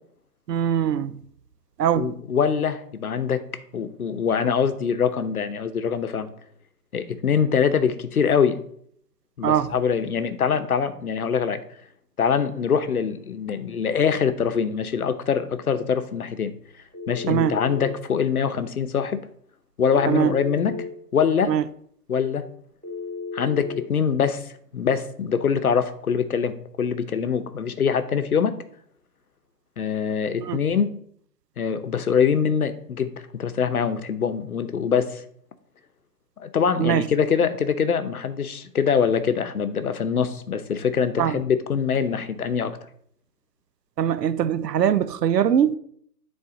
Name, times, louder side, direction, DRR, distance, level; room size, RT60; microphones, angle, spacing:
voice 1, 0.5-1.2 1.8-2.1 9.4-9.7 17.3-17.6 20.1-20.3 21.5-21.6 30.4-30.6 36.8-37.1 41.2-41.4 44.0-45.8, right 9 dB, 75° right, 0.7 m, -22 dB
voice 2, 1.9-3.4 3.7-6.3 6.9-8.6 9.4-11.6 12.2-16.5 17.1-19.2 19.8-20.8 21.1-21.5 22.1-22.4 23.3-28.6 29.8-30.9 31.6-35.2 36.4-42.8, left 6 dB, 60° left, 0.9 m, -24 dB
Telephone, 16.9-18.0 19.9-20.9 22.8-23.9, left 4 dB, 25° right, 0.7 m, -33 dB
9.8 x 4.0 x 3.8 m
hypercardioid pair, 180°, 49 cm